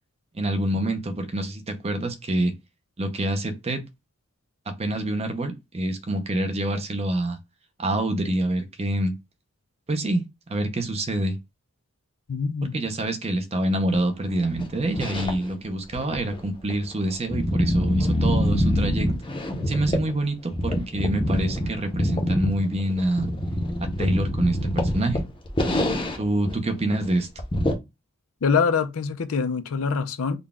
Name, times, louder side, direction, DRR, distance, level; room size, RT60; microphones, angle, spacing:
voice 1, 0.3-2.5 3.0-3.8 4.8-7.4 7.8-9.1 9.9-10.2 10.5-11.4 12.7-19.1 19.7-23.3 23.8-25.2 26.2-27.3, right 1 dB, 30° right, 0.6 m, -26 dB
voice 2, 12.3-12.8 28.4-30.4, left 5 dB, 70° left, 0.5 m, -24 dB
sound 1, 14.4-15.6 15.9-20.2 20.5-26.2 26.5-26.6 26.9-27.0 27.4-27.7, equal, 25° left, 0.7 m, -25 dB
3.9 x 2.2 x 3.4 m
head